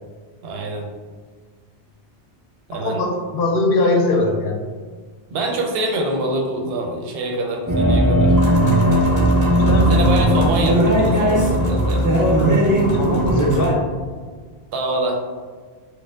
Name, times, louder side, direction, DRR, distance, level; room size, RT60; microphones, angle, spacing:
voice 1, 0.4-0.9 2.7-3.0 5.3-8.4 9.9-12.2 14.7-15.2, right 2 dB, 75° right, 2 dB, 0.8 m, -25 dB
voice 2, 2.7-4.6 9.4-10.0 12.9-13.7, left 2 dB, 70° left, 1 dB, 0.7 m, -21 dB
sound 1, 7.7-13.7, equal, 25° right, 0.5 m, -17 dB
4.2 x 2.1 x 2.4 m, 1.5 s
omnidirectional pair, 1.0 m